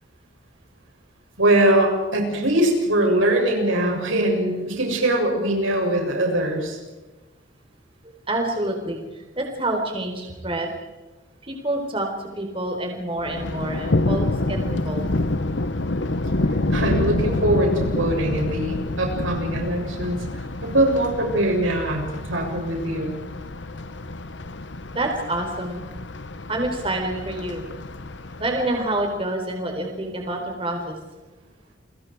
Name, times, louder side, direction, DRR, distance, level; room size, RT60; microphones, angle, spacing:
voice 1, 1.4-6.8 16.7-20.2 20.6-22.0 22.3-23.2, right 1 dB, 90° right, 1 dB, 7.4 m, -22 dB
voice 2, 8.0-10.7 11.4-15.1 24.9-25.8 26.5-27.6 28.4-31.0, right 1 dB, 25° right, 2 dB, 4.2 m, -27 dB
Thunder, 13.2-29.1, left 2 dB, 65° left, 1.1 m, -27 dB
29.5 x 24.0 x 4.8 m, 1.1 s
head